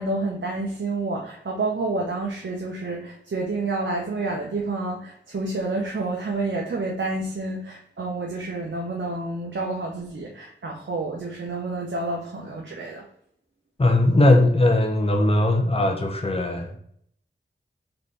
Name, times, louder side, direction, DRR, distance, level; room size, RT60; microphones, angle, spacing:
voice 1, 0.0-13.0, right 2 dB, 70° right, -1 dB, 0.8 m, -29 dB
voice 2, 13.8-16.8, left 1 dB, 30° left, 3 dB, 0.8 m, -19 dB
3.9 x 3.9 x 3.3 m, 0.67 s
wide cardioid pair, 55°, 20 cm